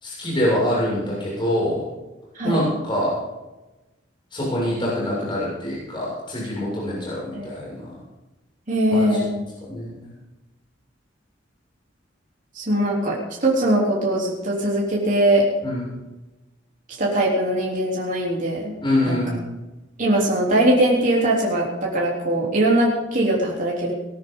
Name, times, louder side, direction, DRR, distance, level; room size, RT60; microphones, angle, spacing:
voice 1, 0.0-1.8 2.4-3.2 4.3-7.8 8.9-9.0 9.7-9.9 15.6-15.9 18.8-19.4, left 1 dB, 25° left, -6 dB, 6.8 m, -24 dB
voice 2, 2.3-2.7 7.3-7.5 8.7-9.3 12.5-15.5 17.0-18.7 19.1-19.2 20.0-23.9, right 1 dB, 45° right, -4 dB, 3.7 m, -21 dB
20.0 x 13.0 x 4.0 m, 1.0 s
head